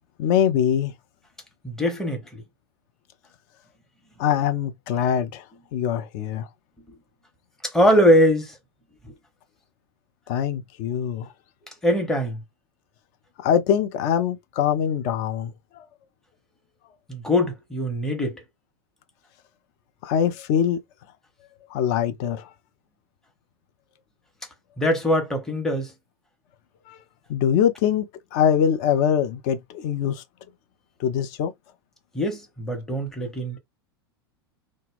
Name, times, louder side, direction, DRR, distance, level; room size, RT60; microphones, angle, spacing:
voice 1, 0.2-0.9 4.2-5.4 5.7-6.5 10.3-11.3 13.4-15.9 20.0-20.8 21.7-22.5 26.9-27.0 27.3-30.2 31.0-31.5, left 8 dB, 45° left, 0.5 m, -23 dB
voice 2, 1.6-2.4 7.6-8.6 9.0-9.1 11.8-12.4 17.1-18.4 24.8-25.9 32.1-33.6, equal, 5° left, 0.8 m, -22 dB
2.1 x 2.0 x 3.5 m
figure-of-eight pair, 85°, 13 cm